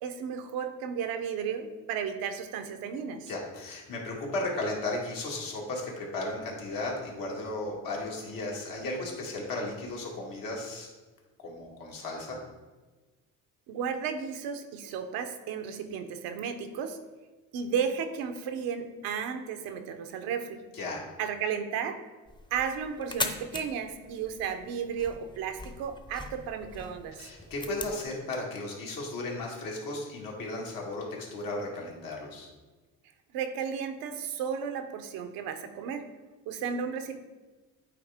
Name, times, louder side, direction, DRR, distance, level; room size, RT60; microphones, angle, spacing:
voice 1, 0.0-3.3 13.7-17.0 17.5-20.6 21.2-22.0 22.5-27.2 33.3-36.1 36.5-37.2, right 7 dB, 90° right, 8 dB, 0.7 m, -34 dB
voice 2, 3.3-10.9 11.4-12.4 20.7-21.0 27.2-32.5, left 2 dB, 70° left, -2 dB, 1.9 m, -35 dB
sound 1, 22.3-28.0, left 2 dB, 15° left, 0.6 m, -40 dB
8.6 x 3.5 x 3.5 m, 1.2 s
cardioid pair, 75°, 35 cm